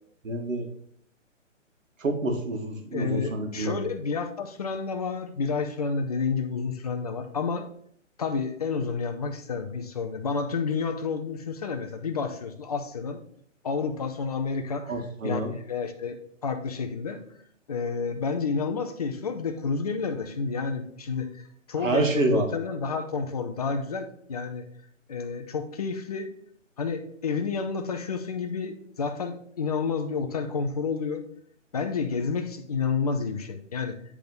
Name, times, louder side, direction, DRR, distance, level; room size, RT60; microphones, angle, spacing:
voice 1, 0.2-0.7 2.0-3.8 14.9-15.5 21.8-22.5, right 2 dB, 85° right, 3 dB, 1.9 m, -27 dB
voice 2, 2.9-7.7 8.2-13.2 13.6-14.9 15.2-15.4 15.7-16.2 16.4-17.2 17.7-21.4 21.7-24.6 25.1-26.3 26.8-31.2 31.7-34.0, left 5 dB, 30° left, 6 dB, 0.6 m, -30 dB
9.8 x 3.5 x 3.9 m, 0.66 s
hypercardioid pair, 160°, 38 cm